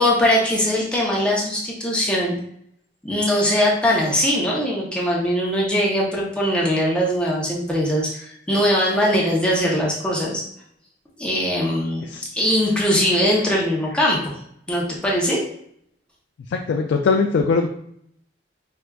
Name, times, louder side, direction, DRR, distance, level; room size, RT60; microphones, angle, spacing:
voice 1, 0.0-2.4 3.0-10.4 11.2-12.1 12.3-14.3 14.7-15.4, equal, 5° left, -4 dB, 0.7 m, -21 dB
voice 2, 12.0-12.4 16.5-17.7, left 4 dB, 85° left, 2 dB, 0.3 m, -21 dB
4.4 x 2.4 x 2.3 m, 0.69 s
head